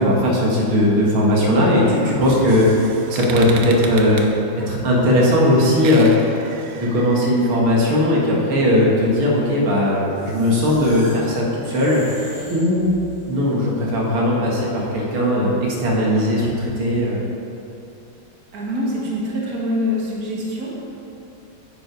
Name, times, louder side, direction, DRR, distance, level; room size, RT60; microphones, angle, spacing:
voice 1, 0.0-2.7 3.1-4.2 4.7-6.1 6.8-12.0 12.5-12.9 13.3-17.2, left 1 dB, 90° right, -4 dB, 2.5 m, -18 dB
sound 1, 2.0-7.6, right 5 dB, 65° right, 1.2 m, -35 dB
sound 2, 10.2-13.4, equal, 85° left, 3.2 m, -40 dB
voice 2, 18.5-20.8, left 1 dB, 50° right, -4 dB, 2.0 m, -25 dB
10.0 x 7.3 x 4.7 m, 2.8 s
omnidirectional pair, 2.2 m